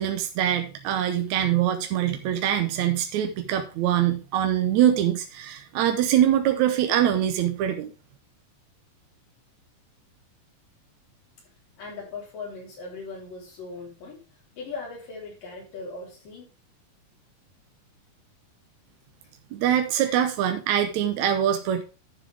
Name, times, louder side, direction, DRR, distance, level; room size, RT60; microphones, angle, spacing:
voice 1, 0.0-7.9 19.5-21.8, right 10 dB, 70° right, 6 dB, 2.0 m, -23 dB
voice 2, 11.8-14.2 14.5-16.5 20.0-20.2, left 4 dB, 75° left, -1 dB, 5.3 m, -39 dB
12.0 x 7.4 x 3.4 m, 0.33 s
omnidirectional pair, 3.9 m